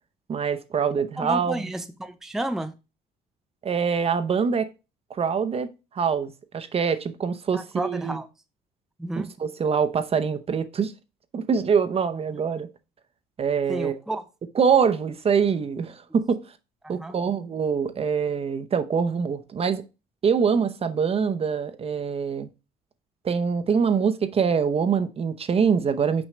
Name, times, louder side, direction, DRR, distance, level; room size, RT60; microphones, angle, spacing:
voice 1, 0.3-1.7 3.6-4.7 5.1-8.2 9.2-10.9 11.3-12.7 13.4-14.0 14.6-16.4 16.9-19.8 20.2-22.5 23.2-26.3, right 6 dB, 35° right, 0.8 m, -24 dB
voice 2, 1.2-2.7 7.5-8.3 9.0-9.3 13.7-14.2 16.8-17.2, right 1 dB, ahead, 0.6 m, -31 dB
6.0 x 5.4 x 3.2 m
cardioid pair, 110°, 17 cm